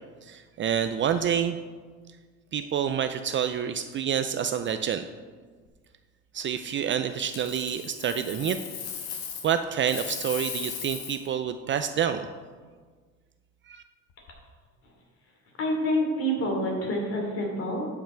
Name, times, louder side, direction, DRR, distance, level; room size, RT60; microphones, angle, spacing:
voice 1, 0.2-1.6 2.5-5.0 6.3-8.6 9.4-12.3 13.7-13.8, right 8 dB, 40° right, 9 dB, 0.5 m, -28 dB
Coin (dropping), 7.2-9.5 9.8-11.3 14.1-14.3, left 7 dB, 85° left, 1.6 m, -37 dB
voice 2, 15.6-17.9, equal, 50° left, 0 dB, 2.9 m, -27 dB
12.0 x 5.7 x 4.5 m, 1.5 s
cardioid pair, 110°, 30 cm